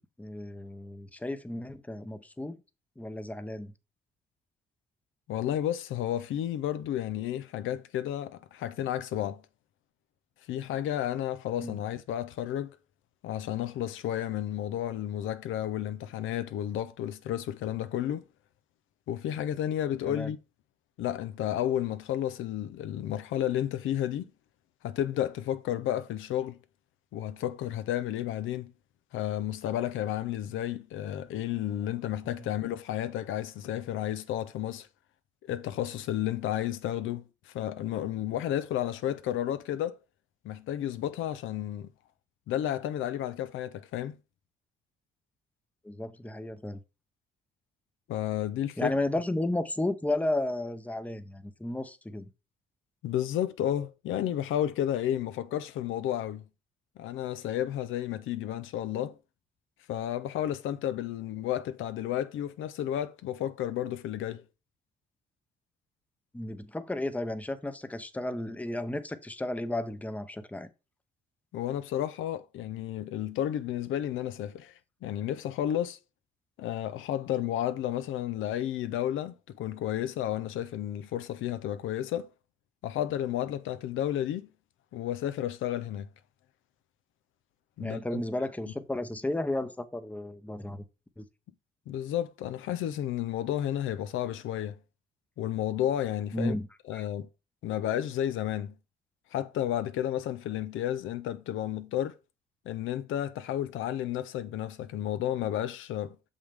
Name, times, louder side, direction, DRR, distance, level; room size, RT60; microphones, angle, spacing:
voice 1, 0.2-2.6 3.0-3.7 11.6-11.8 20.1-20.3 45.8-46.8 48.8-52.2 66.3-70.7 87.8-90.8 91.2-91.3 96.3-96.7 96.9-97.0, left 1 dB, 5° left, 0.7 m, -33 dB
voice 2, 5.3-9.4 10.5-12.8 13.2-18.2 19.1-20.4 21.0-24.3 24.8-26.6 27.1-28.7 29.1-34.9 35.4-40.0 40.4-41.9 42.5-44.2 48.1-48.9 53.0-56.4 57.0-59.2 59.9-64.4 71.5-76.0 76.6-82.3 82.8-84.5 84.9-86.1 87.8-88.2 91.9-94.8 95.4-96.6 96.9-97.3 97.6-98.7 99.3-102.2 102.7-106.2, left 11 dB, 85° left, 0.6 m, -32 dB
6.4 x 5.4 x 3.4 m
cardioid pair, 90°, 20 cm